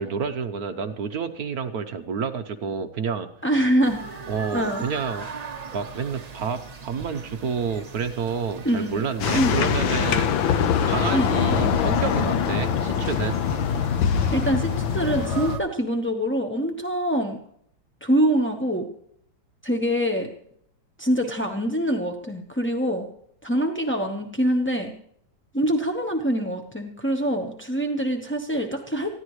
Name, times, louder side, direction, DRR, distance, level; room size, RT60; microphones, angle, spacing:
voice 1, 0.0-3.3 4.3-5.3 5.7-13.4, right 6 dB, 60° right, 8 dB, 1.2 m, -29 dB
voice 2, 3.4-4.3 4.5-4.8 8.6-9.1 9.3-9.6 11.1-11.3 14.3-17.4 18.0-18.9 19.6-20.3 21.0-23.1 23.4-24.9 25.5-29.1, equal, 10° left, 2 dB, 0.5 m, -24 dB
sound 1, 3.8-15.6, right 5 dB, 35° right, 0.6 m, -40 dB
sound 2, 9.2-15.6, left 7 dB, 80° left, 1.6 m, -23 dB
20.0 x 15.5 x 3.2 m, 0.70 s
omnidirectional pair, 2.1 m